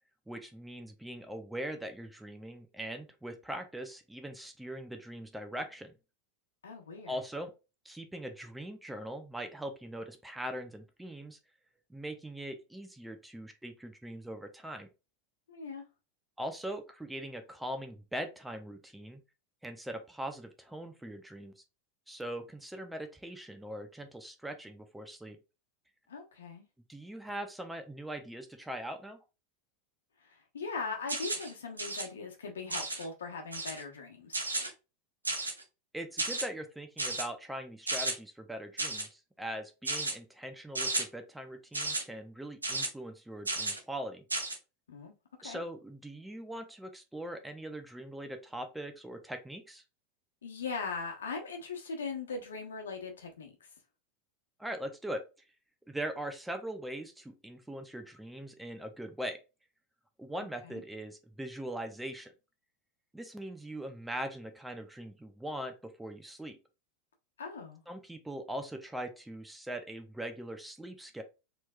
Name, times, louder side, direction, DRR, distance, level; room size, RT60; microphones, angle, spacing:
voice 1, 0.3-5.9 7.1-7.5 7.8-11.4 11.9-14.9 16.4-19.2 19.6-21.5 22.1-25.4 26.9-29.2 35.9-44.2 45.4-49.8 54.6-55.3 55.9-59.4 60.2-62.3 63.1-66.6 67.9-71.2, right 1 dB, 5° right, 0.7 m, -41 dB
voice 2, 6.6-7.2 15.5-15.8 26.1-26.6 30.2-34.4 44.9-45.1 45.4-45.6 50.4-53.7 60.6-60.8 67.4-67.8, left 4 dB, 75° left, 1.1 m, -40 dB
sound 1, 31.1-31.5 31.8-32.1 32.7-33.0 33.5-33.8 34.3-34.7 35.2-35.6 36.2-36.5 37.0-37.3 37.9-38.1 38.8-39.1 39.8-40.1 40.7-41.0 41.7-42.0 42.6-42.9 43.4-43.8 44.3-44.6, right 2 dB, 90° right, 0.8 m, -33 dB
4.3 x 3.1 x 2.4 m
figure-of-eight pair, 85°, 0 cm